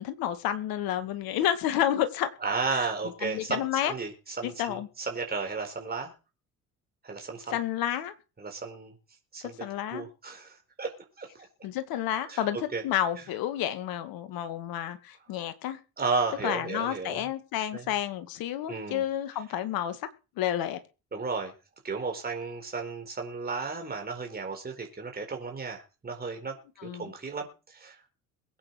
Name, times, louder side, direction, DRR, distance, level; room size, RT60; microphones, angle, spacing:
voice 1, 0.0-2.3 3.2-3.9 4.4-4.9 7.5-8.1 9.4-10.1 11.6-12.6 12.8-15.8 16.4-20.0 20.4-20.8 26.8-27.1, left 11 dB, 55° left, 2.3 m, -30 dB
voice 2, 2.4-6.1 7.0-7.6 8.4-8.9 9.3-9.6 9.9-11.3 12.2-12.5 12.7-12.8 13.1-13.3 16.0-17.3 17.7-17.9 18.7-19.0 21.1-21.5 21.8-28.0, right 4 dB, 20° right, 4.5 m, -34 dB
22.0 x 8.9 x 4.9 m
figure-of-eight pair, 55°, 43 cm